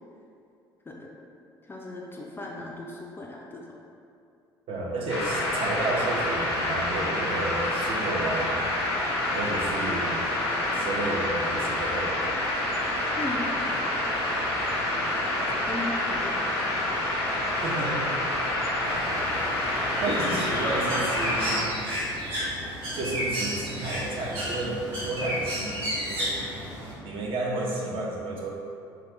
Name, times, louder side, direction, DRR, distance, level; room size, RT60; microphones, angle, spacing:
voice 1, 1.7-3.6 13.2-13.7 15.2-16.4, left 2 dB, 15° left, -2 dB, 0.4 m, -37 dB
voice 2, 4.7-8.7 9.3-10.3 10.7-12.4 17.6-18.1 20.0-21.7 22.9-25.8 26.0-26.5 27.0-28.6, right 2 dB, 45° right, -2 dB, 0.7 m, -31 dB
sound 1, 5.1-21.6, left 1 dB, 80° left, 0.7 m, -27 dB
Bird, 18.8-26.9, equal, 80° right, 0.9 m, -33 dB
3.8 x 2.4 x 3.4 m, 2.5 s
figure-of-eight pair, 55°, 13 cm